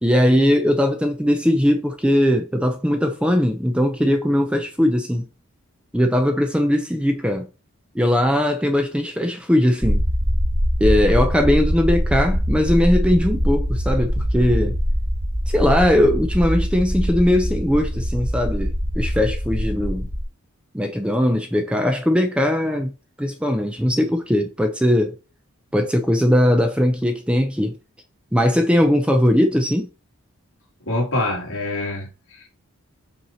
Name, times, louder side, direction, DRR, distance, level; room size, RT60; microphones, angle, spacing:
voice 1, 0.0-5.3 5.9-7.5 7.9-10.0 10.8-14.8 15.5-20.1 20.7-22.9 23.2-25.1 25.7-27.7 28.3-29.9, left 1 dB, 5° right, 0.6 m, -19 dB
sound 1, 9.8-20.2, equal, 30° right, 1.3 m, -22 dB
voice 2, 30.9-32.5, left 2 dB, 65° left, 2.5 m, -25 dB
5.6 x 4.5 x 4.4 m
head